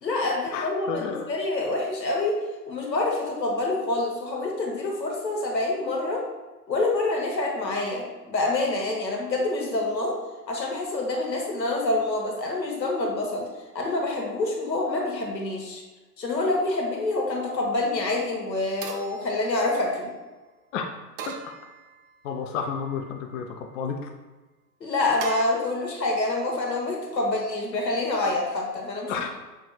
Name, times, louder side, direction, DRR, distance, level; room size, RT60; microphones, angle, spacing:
voice 1, 0.0-2.3 2.7-6.2 6.7-10.1 10.5-13.5 13.7-15.8 16.2-20.1 24.8-29.2, left 2 dB, 90° left, -1 dB, 1.2 m, -27 dB
voice 2, 0.5-1.3 20.7-20.9 21.3-21.4 22.2-24.0 29.1-29.3, left 6 dB, 50° left, 3 dB, 0.6 m, -31 dB
sound 1, 17.5-18.0 18.8-20.2 21.2-22.3 22.8-23.5 25.2-25.4, right 6 dB, 35° right, 0.5 m, -41 dB
6.1 x 3.3 x 2.3 m, 1.2 s
figure-of-eight pair, 105°, 49 cm